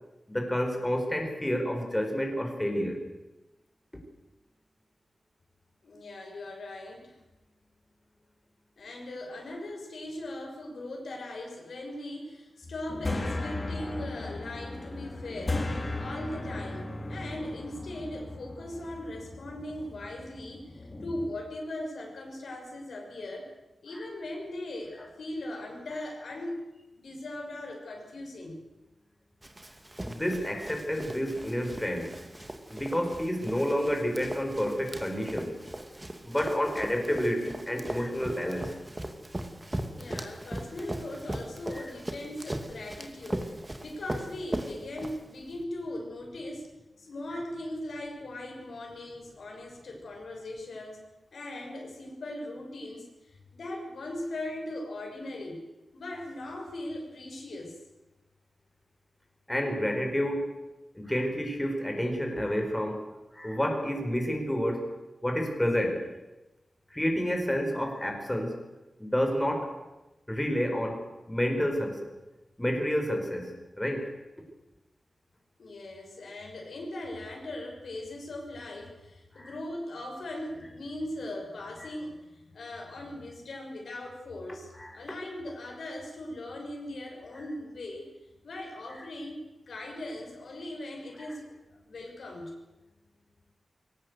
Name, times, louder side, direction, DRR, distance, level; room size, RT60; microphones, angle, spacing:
voice 1, 0.3-3.1 23.9-24.1 30.0-32.1 32.7-35.5 36.2-38.7 41.7-41.9 59.5-60.5 60.9-63.1 63.3-64.9 65.2-66.0 66.9-68.6 69.0-69.7 70.3-72.1 72.6-74.1 79.4-79.5 84.7-85.0, equal, 10° left, 3 dB, 4.7 m, -29 dB
voice 2, 5.8-7.2 8.8-15.6 16.0-23.5 23.8-26.6 27.0-28.6 40.0-43.5 43.8-46.7 47.0-51.0 51.3-55.6 55.9-57.8 75.6-88.1 88.4-91.5 91.7-92.5, left 1 dB, 80° left, 1 dB, 6.3 m, -39 dB
sound 1, 12.6-21.3, left 2 dB, 35° left, 3.3 m, -36 dB
Run, 29.4-45.6, right 1 dB, 20° right, 2.5 m, -39 dB
22.0 x 18.5 x 8.1 m, 1.1 s
wide cardioid pair, 85°, 0 cm